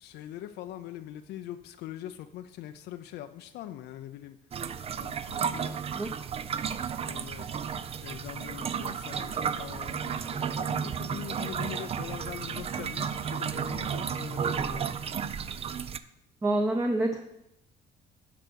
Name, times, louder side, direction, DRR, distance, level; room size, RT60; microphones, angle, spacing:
voice 1, 0.0-4.3 5.0-5.8 7.0-7.5 8.0-14.9, left 12 dB, 75° left, 7 dB, 0.6 m, -42 dB
sound 1, 4.5-16.0, right 7 dB, 35° right, 0.5 m, -33 dB
voice 2, 16.4-17.2, right 1 dB, 20° right, 4 dB, 0.9 m, -26 dB
11.0 x 4.9 x 6.3 m, 0.84 s
cardioid pair, 110°, 17 cm